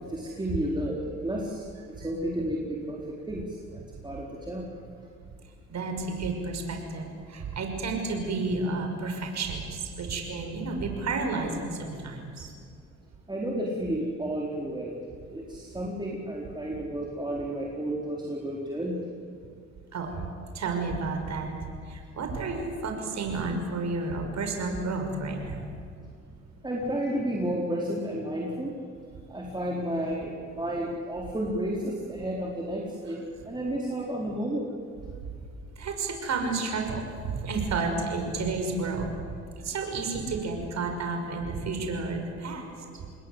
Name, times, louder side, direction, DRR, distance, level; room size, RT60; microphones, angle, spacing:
voice 1, 0.1-1.6 2.0-3.0 3.3-4.7 13.3-15.0 15.3-19.0 26.6-28.7 29.3-34.7 42.7-42.8, right 1 dB, 15° right, -2 dB, 4.4 m, -32 dB
voice 2, 5.7-12.5 19.9-20.1 20.5-21.5 21.9-25.7 35.8-39.1 39.6-42.6, right 3 dB, 60° right, 4 dB, 6.0 m, -31 dB
29.0 x 21.0 x 8.2 m, 2.4 s
cardioid pair, 90°, 30 cm